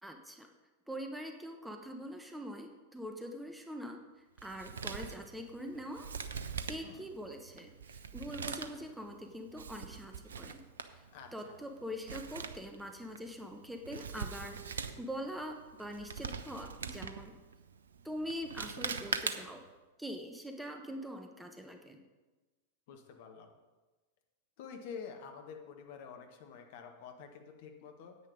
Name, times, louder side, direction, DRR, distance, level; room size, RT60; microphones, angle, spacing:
voice 1, 0.0-0.5 0.9-6.1 6.4-10.6 10.9-11.0 11.3-17.3 18.0-19.6 20.0-22.0, equal, 5° right, 4 dB, 1.0 m, -43 dB
Male speech man speaking, 4.4-19.7, right 6 dB, 70° right, 0.6 m, -43 dB
voice 2, 11.1-11.5 18.8-19.2 22.9-23.5 24.6-28.2, left 6 dB, 50° left, 4 dB, 1.4 m, -48 dB
9.7 x 8.9 x 5.1 m, 1.2 s
figure-of-eight pair, 90°, 0 cm